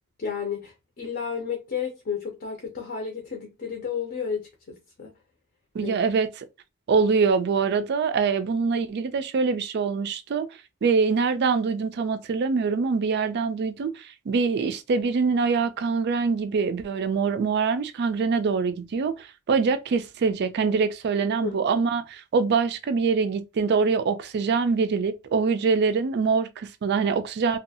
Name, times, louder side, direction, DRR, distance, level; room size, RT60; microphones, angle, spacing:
voice 1, 0.2-5.2 5.8-5.9 21.3-21.6, left 6 dB, 45° left, 0.6 m, -32 dB
voice 2, 5.7-6.3 6.9-10.5 10.8-27.6, right 5 dB, 50° right, 0.3 m, -24 dB
2.6 x 2.3 x 2.7 m
head